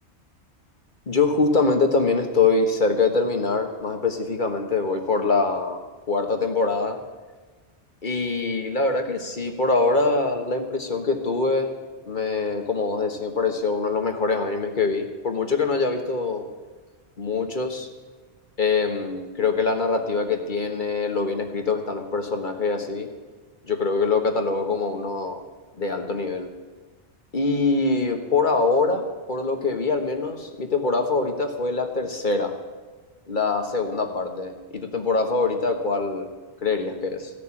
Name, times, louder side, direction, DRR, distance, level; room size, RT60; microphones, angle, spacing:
voice 1, 1.1-5.8 6.1-7.0 8.0-11.7 12.0-16.5 17.2-17.9 18.6-23.1 23.7-25.4 25.8-26.5 27.3-32.5 33.3-36.3 36.6-37.3, left 3 dB, 45° left, 5 dB, 1.5 m, -24 dB
15.5 x 6.8 x 9.8 m, 1.3 s
omnidirectional pair, 1.2 m